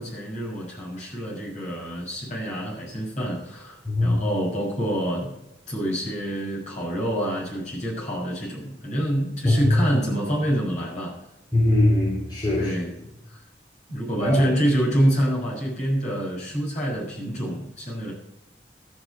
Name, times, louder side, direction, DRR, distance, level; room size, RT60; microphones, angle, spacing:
voice 1, 0.0-5.3 5.7-11.1 12.6-12.9 13.3-13.4 13.9-18.1, equal, 45° left, -3 dB, 6.5 m, -26 dB
voice 2, 3.9-4.2 9.4-9.7 11.5-12.7 14.2-14.5, left 1 dB, 25° left, -5 dB, 3.2 m, -21 dB
13.5 x 6.7 x 8.2 m, 0.85 s
head